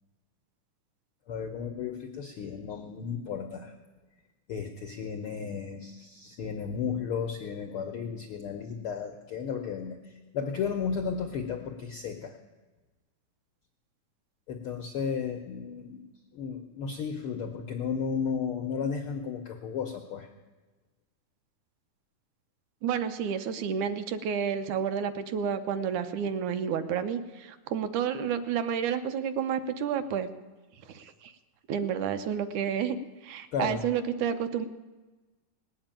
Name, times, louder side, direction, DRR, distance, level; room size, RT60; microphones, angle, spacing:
voice 1, 1.3-3.7 4.5-12.4 14.5-16.0 16.3-20.3 33.5-33.9, left 6 dB, 90° left, 4 dB, 1.2 m, -34 dB
voice 2, 22.8-30.3 30.9-31.3 31.7-33.0 33.2-34.7, right 8 dB, 75° right, 9 dB, 2.1 m, -30 dB
19.0 x 8.1 x 8.9 m, 1.2 s
omnidirectional pair, 3.8 m